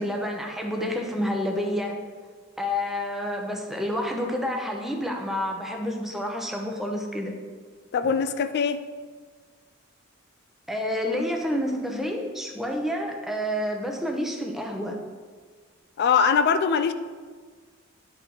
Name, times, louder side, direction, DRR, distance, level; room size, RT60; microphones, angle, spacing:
voice 1, 0.0-1.9 2.6-7.3 10.7-15.0, left 1 dB, ahead, 1 dB, 0.8 m, -29 dB
voice 2, 7.9-8.8 16.0-16.9, left 6 dB, 50° left, 11 dB, 0.4 m, -22 dB
10.5 x 3.9 x 4.7 m, 1.5 s
head